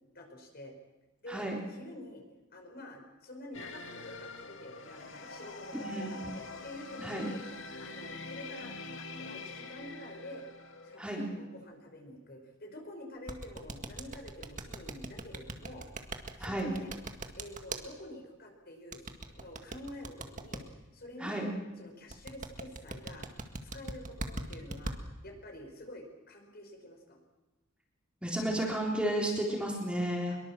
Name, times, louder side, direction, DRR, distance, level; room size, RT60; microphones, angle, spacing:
voice 1, 0.1-0.7 1.2-2.2 2.5-7.4 7.7-10.5 10.8-15.9 16.1-16.9 17.3-20.6 20.9-21.4 21.8-23.3 23.6-25.0 25.2-27.2 30.3-30.4, left 1 dB, 50° left, 3 dB, 5.4 m, -48 dB
voice 2, 1.3-1.6 5.7-6.2 7.0-7.3 11.0-11.3 16.4-16.8 21.2-21.5 28.2-30.4, right 1 dB, 5° right, -1 dB, 3.8 m, -32 dB
sound 1, 3.5-11.0, left 3 dB, 75° left, 2.5 m, -45 dB
sound 2, 13.3-17.8 18.9-20.6 22.1-25.0, right 2 dB, 40° right, 1.9 m, -39 dB
24.0 x 22.5 x 7.5 m, 1.1 s
head